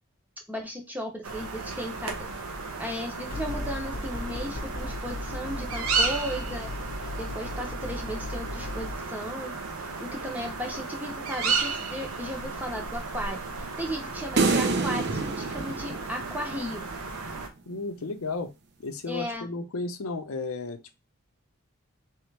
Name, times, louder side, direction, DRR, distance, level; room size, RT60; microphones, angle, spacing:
voice 1, 0.5-2.3 2.8-6.7 7.2-16.8 19.1-19.5, equal, 10° right, 0.7 m, -36 dB
sound 1, 1.2-17.5, right 4 dB, 90° right, 0.8 m, -34 dB
sound 2, 3.3-8.9, left 2 dB, 40° left, 0.8 m, -36 dB
sound 3, 14.4-16.8, right 3 dB, 50° right, 0.5 m, -27 dB
voice 2, 17.7-18.5 18.8-20.9, left 3 dB, 80° left, 0.6 m, -33 dB
3.5 x 2.9 x 3.2 m
head